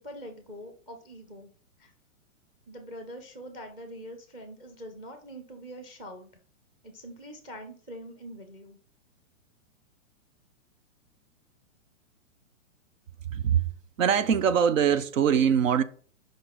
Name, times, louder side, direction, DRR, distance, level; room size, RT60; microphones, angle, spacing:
voice 1, 0.0-1.5 1.8-1.9 2.7-6.3 6.8-8.8, equal, 10° right, 0.6 m, -44 dB
voice 2, 13.3-13.7 14.0-15.8, right 8 dB, 75° right, 0.8 m, -23 dB
5.2 x 3.9 x 5.8 m
hypercardioid pair, 150°, 39 cm